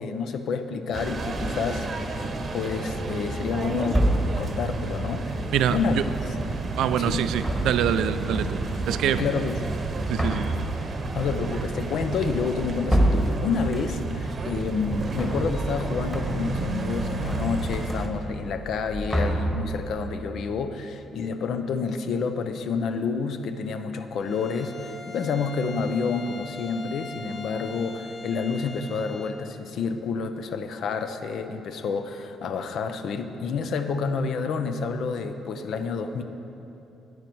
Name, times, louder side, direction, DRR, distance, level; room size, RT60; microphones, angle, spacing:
voice 1, 0.0-2.3 2.5-4.1 4.4-5.4 5.7-6.3 7.0-7.3 9.2-9.7 11.1-36.2, left 5 dB, 70° left, 8 dB, 0.6 m, -29 dB
sound 1, 0.9-18.1, right 3 dB, 45° right, 0.8 m, -31 dB
sound 2, 1.3-1.8 2.6-3.1 3.9-4.6 7.2-8.1 8.3-8.9 9.7-14.3 14.6-15.8 16.1-16.6 16.9-18.5 18.8-19.9, right 1 dB, 5° left, 1.3 m, -28 dB
voice 2, 5.5-6.0 6.8-8.6 8.9-9.2 10.1-10.5, right 10 dB, 85° right, 13 dB, 0.3 m, -25 dB
Bowed string instrument, 24.2-29.4, left 3 dB, 45° left, 0.8 m, -42 dB
9.4 x 9.2 x 4.6 m, 2.9 s
cardioid pair, 90°, 0 cm